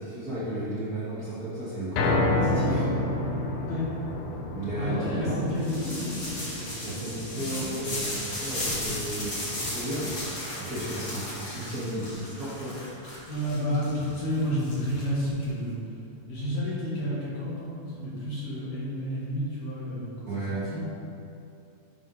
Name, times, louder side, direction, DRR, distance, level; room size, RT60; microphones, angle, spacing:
voice 1, 0.0-2.9 4.5-5.3 6.8-10.1 10.6-12.9 20.3-20.6, right 1 dB, 75° right, -10 dB, 0.8 m, -34 dB
sound 1, 2.0-14.2 14.6-14.7 15.2-15.3, left 2 dB, 85° left, 2.3 m, -32 dB
voice 2, 4.7-7.8 13.3-15.8 16.3-20.8, equal, 60° left, -8 dB, 2.8 m, -31 dB
sound 2, 5.5-15.4, left 1 dB, 40° left, 1.4 m, -35 dB
7.9 x 3.7 x 5.5 m, 2.7 s
omnidirectional pair, 3.6 m